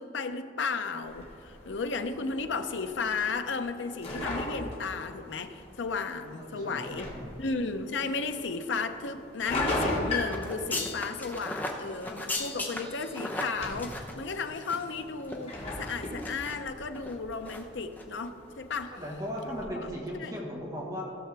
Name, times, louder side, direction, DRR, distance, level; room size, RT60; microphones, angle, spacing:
voice 1, 0.0-7.1 7.4-18.9 20.1-20.3, left 4 dB, 90° left, 8 dB, 0.6 m, -34 dB
sound 1, 1.0-19.7, left 2 dB, 35° left, 2.1 m, -39 dB
voice 2, 6.3-7.4 18.9-21.0, equal, 20° right, -4 dB, 1.5 m, -37 dB
sound 2, 10.3-15.0 15.2-15.4 15.8-16.6 16.9-17.1 17.5-17.7 17.9-18.0, left 2 dB, 10° left, 0.8 m, -37 dB
16.0 x 6.7 x 3.4 m, 3.0 s
head